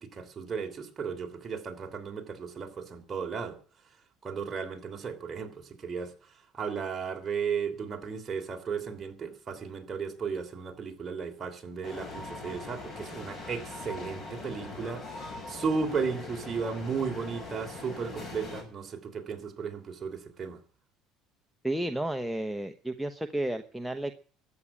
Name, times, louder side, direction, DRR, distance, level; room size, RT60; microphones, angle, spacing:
voice 1, 0.0-3.6 4.2-6.1 6.5-20.6, right 5 dB, 30° right, 3.2 m, -35 dB
sound 1, 11.8-18.6, left 3 dB, 35° left, 7.0 m, -41 dB
voice 2, 21.6-24.1, right 1 dB, ahead, 1.0 m, -32 dB
13.5 x 8.6 x 8.7 m
cardioid pair, 110°, 0 cm